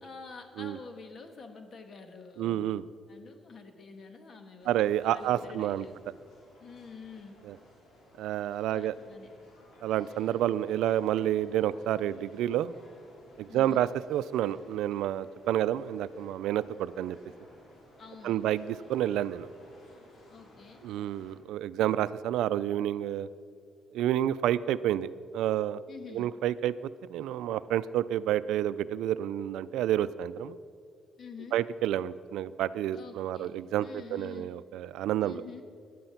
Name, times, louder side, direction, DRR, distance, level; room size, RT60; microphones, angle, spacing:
voice 1, 0.0-2.8 3.1-6.0 6.6-7.4 8.7-9.3 13.5-13.9 18.0-18.4 20.3-20.8 25.9-26.4 31.2-31.6 32.9-34.5 35.2-35.7, left 5 dB, 50° left, 6 dB, 1.8 m, -47 dB
voice 2, 2.4-2.8 4.7-5.8 7.5-7.6 8.2-8.9 9.8-12.7 13.4-17.2 18.2-19.5 20.8-23.3 23.9-25.8 26.1-26.7 27.1-30.6 31.5-35.4, right 12 dB, 85° right, 15 dB, 0.4 m, -29 dB
sound 1, 4.6-21.4, left 1 dB, 65° left, 4.1 m, -56 dB
17.0 x 11.0 x 5.8 m, 2.2 s
cardioid pair, 90°, 0 cm